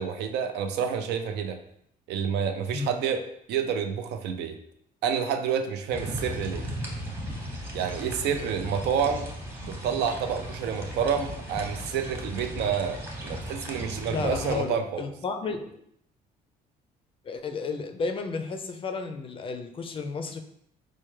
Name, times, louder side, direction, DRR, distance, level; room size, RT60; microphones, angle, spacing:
voice 1, 0.0-1.6 2.1-4.6 5.0-6.7 7.7-9.3 9.6-15.0, right 7 dB, 80° right, 7 dB, 0.4 m, -29 dB
sound 1, 5.9-14.6, equal, 15° right, 0.9 m, -36 dB
voice 2, 14.1-15.8 17.2-20.4, left 4 dB, 30° left, 6 dB, 0.4 m, -32 dB
4.4 x 2.2 x 3.1 m, 0.73 s
cardioid pair, 110°, 17 cm